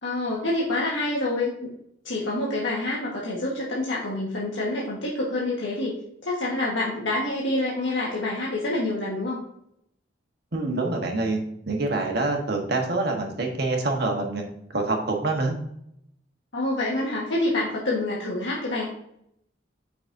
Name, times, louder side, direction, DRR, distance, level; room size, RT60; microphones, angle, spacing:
voice 1, 0.0-1.7 2.0-6.0 6.2-9.4 16.5-18.9, left 2 dB, 80° left, -5 dB, 1.5 m, -27 dB
voice 2, 10.5-14.4 14.7-15.6, right 2 dB, 60° right, 2 dB, 1.3 m, -26 dB
7.6 x 5.9 x 2.7 m, 0.73 s
head